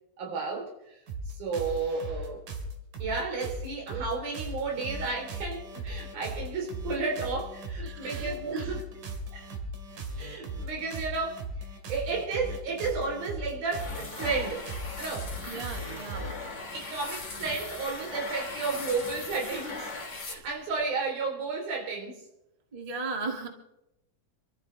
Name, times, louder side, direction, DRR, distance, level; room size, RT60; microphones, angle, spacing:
voice 1, 0.2-1.0 1.3-2.4 3.0-8.8 9.3-9.5 10.2-14.7 15.0-15.7 16.7-19.8 20.3-22.2, right 4 dB, 85° right, 0 dB, 5.5 m, -33 dB
sound 1, 1.1-16.5, right 1 dB, 65° right, 3.7 m, -38 dB
voice 2, 7.8-8.7 15.5-16.4 22.7-23.5, right 3 dB, 25° right, 3 dB, 0.8 m, -36 dB
sound 2, 13.7-20.8, left 3 dB, 25° left, 2.2 m, -39 dB
27.5 x 13.5 x 3.4 m, 0.88 s
omnidirectional pair, 4.1 m